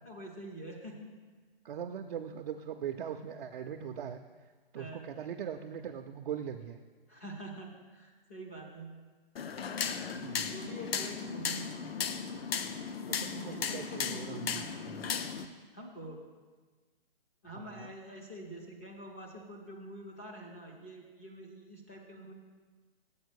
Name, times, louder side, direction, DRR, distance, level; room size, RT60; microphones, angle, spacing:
voice 1, 0.0-1.1 4.7-5.0 7.1-8.9 10.5-11.9 13.4-14.7 15.7-16.2 17.4-22.3, right 1 dB, 15° left, -2 dB, 0.3 m, -46 dB
voice 2, 1.6-4.2 4.7-6.8 10.1-10.5 13.1-14.6 14.9-15.1 17.5-17.9, right 8 dB, 60° right, 4 dB, 0.5 m, -40 dB
sound 1, 9.4-15.5, left 6 dB, 80° left, 0.6 m, -36 dB
7.2 x 4.5 x 6.4 m, 1.4 s
hypercardioid pair, 155°, 29 cm